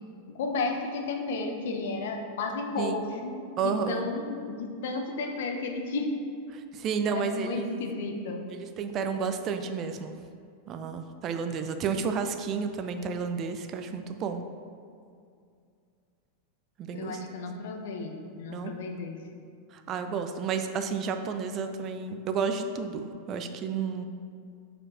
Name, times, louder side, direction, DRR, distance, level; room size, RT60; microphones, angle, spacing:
voice 1, 0.3-6.1 7.1-8.4 16.9-19.2, left 3 dB, 75° left, 3 dB, 0.8 m, -33 dB
voice 2, 3.6-4.1 6.5-7.9 8.5-10.1 10.7-14.4 16.8-17.2 18.5-18.7 19.7-24.1, right 5 dB, 40° right, 7 dB, 0.5 m, -31 dB
5.3 x 4.3 x 4.9 m, 2.3 s
hypercardioid pair, 110°, 0 cm